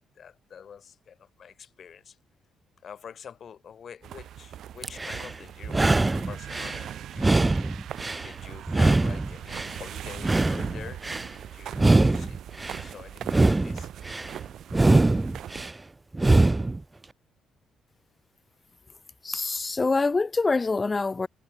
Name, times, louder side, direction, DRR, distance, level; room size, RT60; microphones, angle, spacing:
voice 1, 0.2-2.2 2.8-7.4 8.2-13.9, left 7 dB, 55° left, 2.3 m, -46 dB
sound 1, 4.0-15.7, right 10 dB, 70° right, 0.5 m, -40 dB
sound 2, 4.8-5.3 5.7-6.8 7.2-8.3 8.7-9.8 10.2-11.3 11.7-12.8 13.2-14.3 14.7-15.7 16.1-16.8, right 2 dB, 20° right, 0.6 m, -23 dB
voice 2, 19.2-21.3, left 3 dB, 25° left, 0.8 m, -25 dB
cardioid pair, 90°, 0 cm